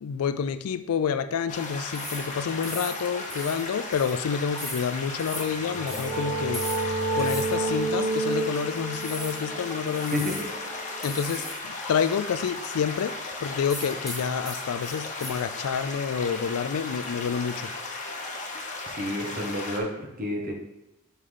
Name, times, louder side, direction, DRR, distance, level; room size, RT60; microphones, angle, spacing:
voice 1, 0.0-6.6 7.1-10.3 11.0-13.1 13.4-17.7, left 7 dB, 75° left, 12 dB, 0.4 m, -28 dB
sound 1, 1.5-19.8, left 2 dB, 35° left, 0.9 m, -36 dB
sound 2, 1.9-2.3 2.6-3.0 3.3-3.6 3.9-4.2 4.6-4.9 5.2-5.5 5.9-6.1 6.5-6.9 7.2-7.5 7.9-8.0 8.9-9.4 9.9-10.5 11.0-11.6 11.8-11.9 13.7-15.3, equal, ahead, 1.1 m, -38 dB
sound 3, 5.4-11.0, right 2 dB, 70° right, 1.5 m, -30 dB
voice 2, 10.1-10.5 19.0-20.5, left 1 dB, 40° right, 1 dB, 1.1 m, -30 dB
5.5 x 3.9 x 4.9 m, 0.92 s
head